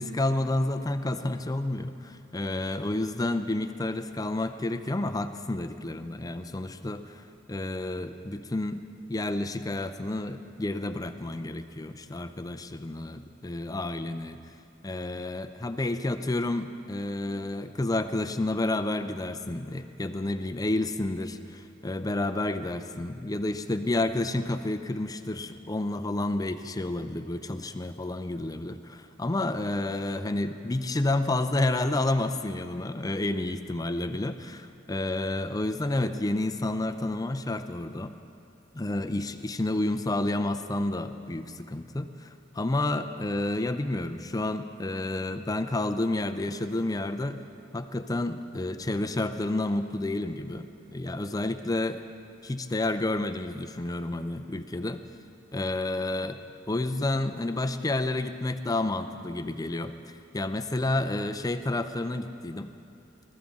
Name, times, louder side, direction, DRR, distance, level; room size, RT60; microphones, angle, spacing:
voice 1, 0.0-8.8 9.1-14.4 14.8-38.2 38.7-47.4 47.7-52.0 52.4-55.0 55.5-56.4 56.7-59.9 60.3-62.7, left 2 dB, 20° left, 9 dB, 0.5 m, -30 dB
19.5 x 13.5 x 3.7 m, 2.7 s
head